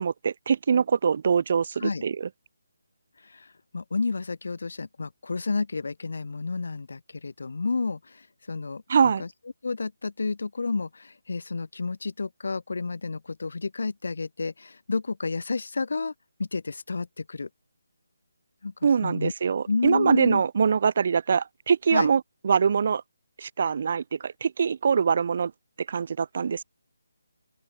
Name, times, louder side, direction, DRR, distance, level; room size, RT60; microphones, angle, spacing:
voice 1, 0.0-2.3 8.9-9.2 18.8-23.0 23.4-25.5 25.9-26.6, right 6 dB, 45° right, 0.5 m, -23 dB
voice 2, 3.2-9.3 9.6-16.1 16.4-17.5 18.6-18.7 19.0-19.3 19.7-20.4 21.9-22.1, left 4 dB, 65° left, 1.3 m, -30 dB
open air
figure-of-eight pair, 165°, 0 cm